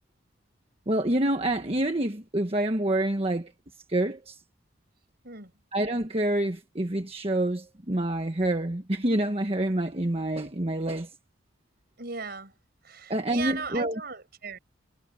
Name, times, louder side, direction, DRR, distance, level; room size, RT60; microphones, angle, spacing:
voice 1, 0.9-3.5 3.9-4.4 5.7-11.1 13.1-14.0, right 1 dB, 30° right, 1.3 m, -27 dB
voice 2, 12.0-12.5 12.8-14.6, right 5 dB, 55° right, 5.4 m, -37 dB
head